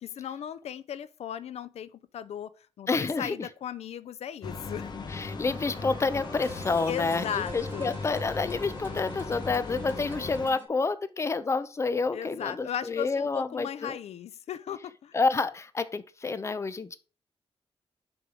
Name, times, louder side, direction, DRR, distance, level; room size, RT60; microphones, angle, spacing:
voice 1, 0.0-2.5 2.8-5.4 6.9-7.9 12.1-15.2, left 9 dB, 85° left, 0.5 m, -37 dB
voice 2, 2.9-3.5 5.1-14.0 15.1-17.0, left 4 dB, 25° left, 0.7 m, -29 dB
sound 1, 4.4-10.5, left 4 dB, 45° left, 1.1 m, -38 dB
sound 2, 5.1-10.7, equal, 20° right, 2.1 m, -44 dB
7.1 x 4.6 x 5.0 m
wide cardioid pair, 150°, 11 cm